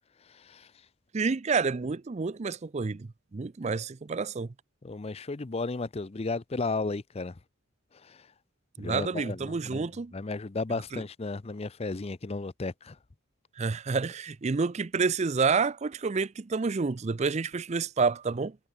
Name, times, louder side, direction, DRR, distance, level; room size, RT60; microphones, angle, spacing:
voice 1, 0.3-0.7 4.8-7.4 8.0-8.3 8.8-13.0, left 3 dB, 30° left, 0.5 m, -34 dB
voice 2, 1.1-4.5 8.8-10.1 10.9-11.0 13.6-18.6, right 4 dB, 30° right, 0.4 m, -29 dB
head